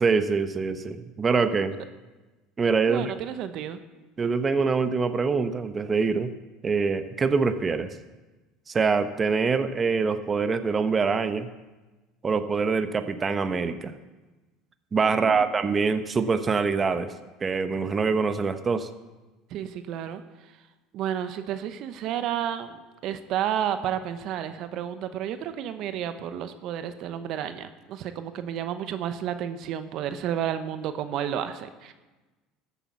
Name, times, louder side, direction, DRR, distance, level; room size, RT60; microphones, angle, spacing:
voice 1, 0.0-1.8 2.6-3.1 4.2-6.3 6.6-7.9 8.7-11.5 12.2-13.9 14.9-17.1 17.4-18.9, right 5 dB, 30° right, 10 dB, 0.9 m, -24 dB
voice 2, 2.9-3.8 15.1-15.4 19.5-20.2 20.9-22.8 23.0-31.9, right 10 dB, 60° right, 10 dB, 0.9 m, -31 dB
13.5 x 8.4 x 7.2 m, 1.2 s
hypercardioid pair, 80°, 0 cm